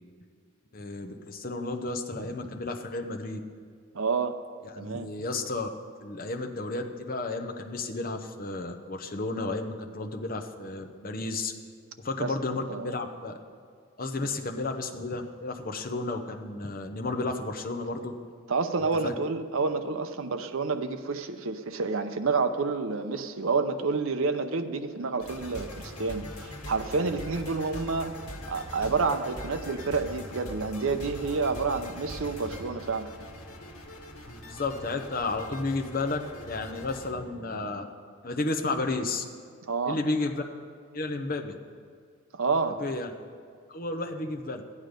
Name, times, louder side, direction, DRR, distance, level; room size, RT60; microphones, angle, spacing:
voice 1, 0.7-3.4 4.6-5.7 6.0-11.5 12.0-13.3 14.0-18.1 18.8-19.1 34.5-37.9 38.2-39.2 39.9-40.4 40.9-41.6 42.8-43.1 43.7-44.6, left 2 dB, 40° left, 4 dB, 0.8 m, -32 dB
voice 2, 3.9-4.4 4.8-5.1 12.2-12.3 12.7-12.9 18.5-28.1 28.5-33.1 39.7-40.0 42.3-42.8, right 4 dB, 70° right, 8 dB, 0.7 m, -29 dB
sound 1, 25.2-37.1, left 1 dB, 85° left, 1.5 m, -42 dB
13.0 x 9.6 x 5.2 m, 2.1 s
head